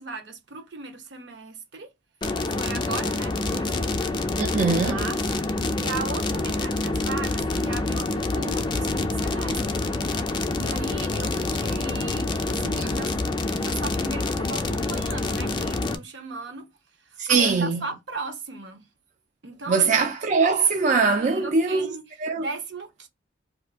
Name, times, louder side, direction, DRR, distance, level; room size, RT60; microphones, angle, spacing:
voice 1, 0.0-1.9 2.4-4.3 4.9-9.9 10.3-13.1 13.5-16.7 17.1-18.8 19.4-20.1 21.2-23.1, right 3 dB, 70° right, 0.9 m, -37 dB
sound 1, 2.2-16.0, left 2 dB, 25° left, 0.4 m, -27 dB
voice 2, 4.4-5.1 17.2-17.9 19.7-22.5, right 4 dB, 40° right, 0.4 m, -22 dB
2.6 x 2.4 x 3.4 m
head